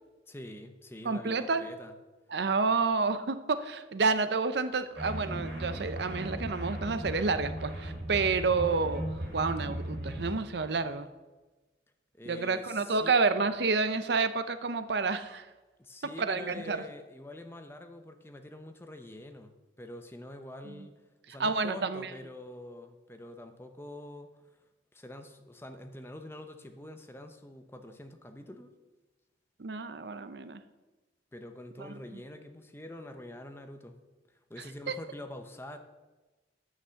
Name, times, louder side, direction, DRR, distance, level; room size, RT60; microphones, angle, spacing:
voice 1, 0.3-1.9 12.1-13.1 15.8-20.9 21.3-24.6 24.9-28.7 31.3-33.9 34.3-35.8, left 1 dB, 15° left, 6 dB, 0.7 m, -46 dB
voice 2, 1.0-1.7 2.3-9.0 9.3-11.1 12.3-15.5 16.3-16.8 20.7-20.9 21.4-22.1 29.6-30.6 34.9-35.0, right 4 dB, 60° right, 11 dB, 0.6 m, -29 dB
sound 1, 4.9-10.4, right 1 dB, 90° right, 2.9 m, -37 dB
9.8 x 5.9 x 7.1 m, 1.2 s
head